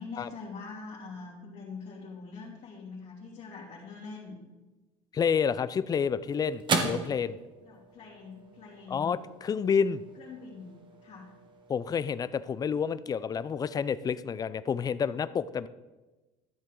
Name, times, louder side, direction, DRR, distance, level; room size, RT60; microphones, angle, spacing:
voice 1, 0.0-4.4 7.6-9.1 10.2-10.7 11.0-11.3, left 4 dB, 50° left, -8 dB, 2.9 m, -43 dB
voice 2, 5.1-7.4 8.9-10.0 11.7-15.7, left 6 dB, 25° left, 16 dB, 0.4 m, -29 dB
sound 1, 5.4-14.0, right 4 dB, 35° right, 1.4 m, -38 dB
13.0 x 7.5 x 3.8 m, 1.1 s
cardioid pair, 120°, 14 cm